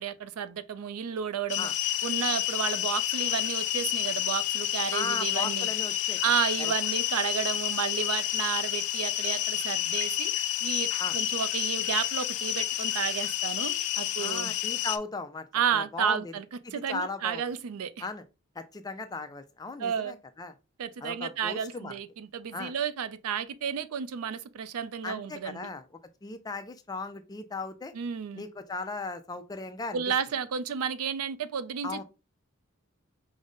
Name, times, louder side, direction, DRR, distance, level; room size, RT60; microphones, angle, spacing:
voice 1, 0.0-1.7 2.0-5.7 6.2-10.3 10.6-14.5 15.5-16.5 16.7-18.0 19.8-20.1 20.8-25.7 27.9-28.4 29.9-32.0, right 7 dB, 85° right, 0.4 m, -32 dB
sound 1, 1.5-15.0, left 13 dB, 85° left, 0.4 m, -30 dB
voice 2, 4.9-6.2 6.6-6.7 11.0-11.2 14.2-15.5 15.7-16.3 16.6-17.4 18.0-18.2 18.6-20.5 21.0-22.0 22.5-22.7 25.0-25.8 26.2-27.9 28.4-30.0 31.8-32.0, left 3 dB, 15° left, 0.3 m, -37 dB
5.1 x 2.1 x 3.7 m
head